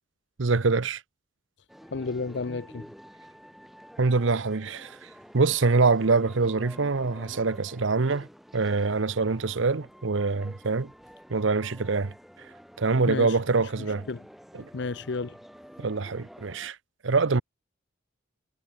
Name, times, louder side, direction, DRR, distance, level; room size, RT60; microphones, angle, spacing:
voice 1, 0.4-1.0 4.0-5.0 5.3-8.3 8.5-10.9 11.3-12.1 12.8-14.1 14.5-14.7 15.8-16.8 17.0-17.4, right 4 dB, 70° right, 0.8 m, -24 dB
sound 1, 1.7-16.7, equal, ahead, 3.0 m, -49 dB
voice 2, 1.9-2.8 13.1-13.7 14.1-14.2 14.7-15.4, left 4 dB, 60° left, 0.6 m, -32 dB
head